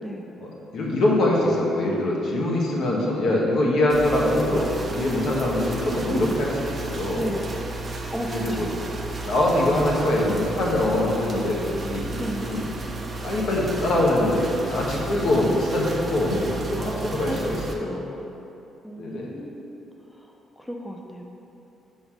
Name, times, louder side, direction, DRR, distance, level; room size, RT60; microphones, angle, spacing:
voice 1, 0.4-7.2 8.2-8.8 9.2-12.1 12.4-12.6 13.2-18.1 19.0-19.3, left 1 dB, 65° left, -3 dB, 1.3 m, -23 dB
sound 1, 3.9-17.7, right 2 dB, 30° right, 0.8 m, -33 dB
voice 2, 6.1-6.4 7.1-7.5 8.1-8.7 12.1-12.5 16.8-18.3 18.8-19.7 20.6-21.2, equal, 10° left, 1 dB, 0.5 m, -33 dB
6.1 x 3.9 x 6.1 m, 3.0 s
cardioid pair, 90°, 0 cm